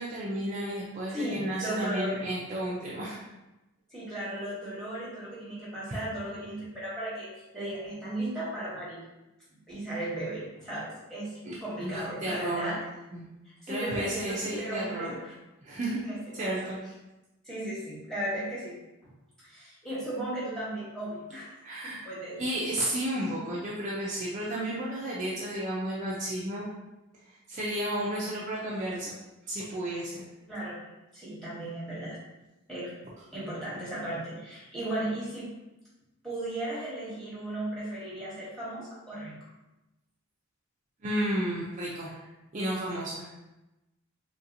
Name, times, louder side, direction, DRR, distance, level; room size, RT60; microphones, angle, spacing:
voice 1, 0.0-3.2 5.9-6.0 11.4-12.8 13.1-13.2 13.7-15.2 15.6-16.0 16.3-16.8 21.6-22.0 22.4-26.7 27.2-29.1 29.5-30.3 41.0-43.3, right 1 dB, 35° right, -6 dB, 0.4 m, -32 dB
voice 2, 1.1-2.3 3.9-9.0 9.7-12.8 13.4-15.3 16.0-16.5 17.4-18.8 19.0-19.1 19.4-21.5 21.8-22.4 30.5-32.2 32.7-32.9 33.3-35.5 36.2-39.4, right 1 dB, 5° left, -9 dB, 1.1 m, -36 dB
3.2 x 2.7 x 2.5 m, 1.0 s
head